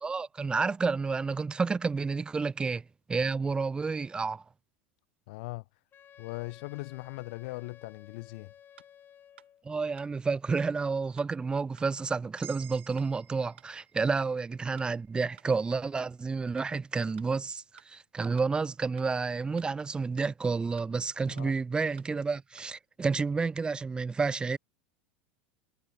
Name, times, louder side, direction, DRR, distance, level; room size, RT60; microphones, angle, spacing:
voice 1, 0.0-2.8 3.1-4.4 9.6-24.6, right 4 dB, 15° right, 0.4 m, -30 dB
voice 2, 5.3-5.6 6.2-8.5 21.3-21.5, left 24 dB, 65° left, 1.8 m, -40 dB
Wind instrument woodwind instrument, 5.9-9.7, left 9 dB, 35° left, 7.6 m, -55 dB
sound 1, 8.8-8.9 9.4-9.5 10.0-10.1 10.6-10.7 11.2-11.3 11.8-11.9 12.4-12.5 13.0-13.1 13.6-13.7 14.2-14.3 14.8-14.9 15.4-15.5 16.0-16.1 16.6-16.7 17.2-17.3 17.8-17.9 18.4-18.5 19.0-19.1 19.6-19.7 20.2-20.3 20.8-20.9 21.4-21.5 22.0-22.1 22.6-22.7, right 11 dB, 85° right, 1.6 m, -54 dB
sound 2, 12.4-16.7, right 10 dB, 40° right, 4.7 m, -54 dB
hypercardioid pair, 95°, 6 cm